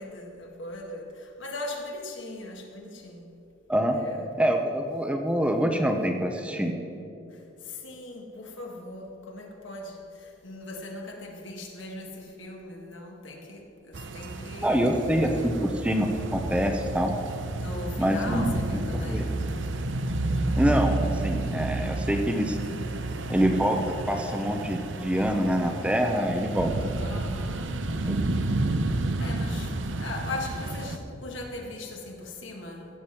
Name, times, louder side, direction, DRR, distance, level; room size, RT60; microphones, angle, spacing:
voice 1, 0.0-3.3 3.9-4.3 7.6-15.6 17.6-19.3 27.0-27.7 29.2-29.7 30.0-32.9, left 2 dB, 70° left, 1 dB, 1.9 m, -39 dB
voice 2, 4.4-6.7 14.6-15.5 15.8-17.2 18.0-18.8 19.1-19.2 20.6-22.6 23.3-26.7 28.1-28.2, equal, 5° right, 4 dB, 0.7 m, -25 dB
sound 1, 13.9-31.0, right 2 dB, 70° right, 0.8 m, -31 dB
16.0 x 7.3 x 5.8 m, 2.7 s
head